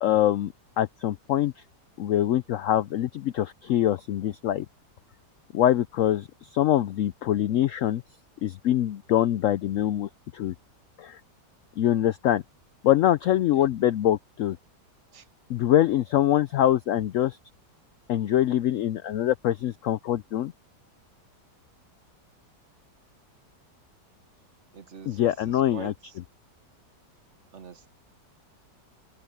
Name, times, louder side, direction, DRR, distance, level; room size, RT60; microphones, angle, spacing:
voice 1, 0.0-1.5 2.0-4.7 5.5-8.0 8.4-10.5 11.0-11.2 11.8-12.4 12.8-14.6 15.5-17.4 18.1-20.5 25.1-25.9, left 12 dB, 75° left, 0.7 m, -24 dB
voice 2, 24.7-26.1 27.5-27.9, right 6 dB, 45° right, 1.4 m, -44 dB
open air
omnidirectional pair, 1.8 m